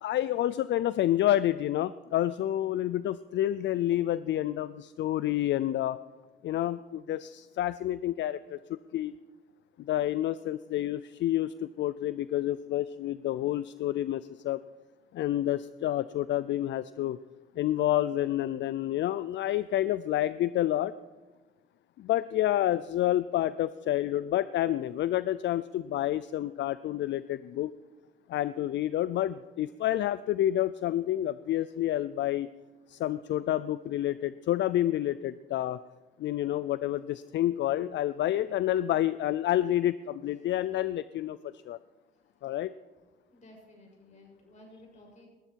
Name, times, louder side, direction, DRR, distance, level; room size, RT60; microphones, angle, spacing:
voice 1, 0.0-6.0 6.4-9.1 9.8-14.6 15.1-17.2 17.6-20.9 22.0-27.7 28.3-32.5 32.9-35.8 36.2-41.8 42.4-42.7, left 13 dB, 65° left, 16 dB, 0.4 m, -29 dB
voice 2, 9.9-10.2 22.1-22.5 31.5-31.7 32.9-33.4 40.4-40.5 41.7-42.5 43.3-45.3, left 1 dB, 35° left, 0 dB, 6.5 m, -57 dB
19.0 x 13.0 x 4.6 m, 1.2 s
cardioid pair, 90°, 20 cm